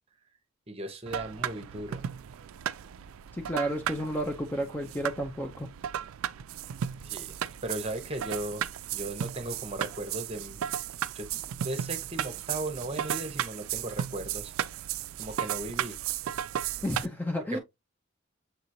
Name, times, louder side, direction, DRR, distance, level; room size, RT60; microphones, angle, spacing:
voice 1, 0.7-2.0 7.1-7.4 7.6-8.6 8.9-10.6 11.1-14.5 15.2-16.0 17.5-17.6, right 1 dB, 30° right, 0.9 m, -37 dB
sound 1, 1.1-17.1, right 10 dB, 90° right, 0.3 m, -35 dB
voice 2, 3.3-5.7 16.8-17.6, equal, 10° left, 0.4 m, -31 dB
6.7 x 3.0 x 2.6 m
head